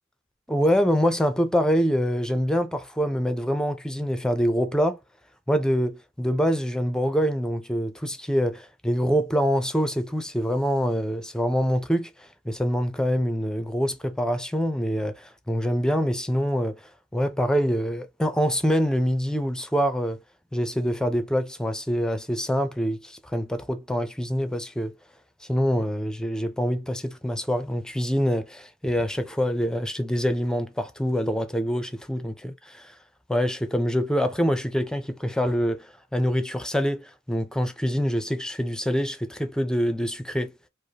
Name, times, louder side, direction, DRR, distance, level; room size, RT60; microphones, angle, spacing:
voice 1, 0.5-5.0 5.5-20.2 20.5-24.9 25.5-32.9 33.3-40.5, equal, 5° left, 0.5 m, -25 dB
5.1 x 2.1 x 2.8 m
head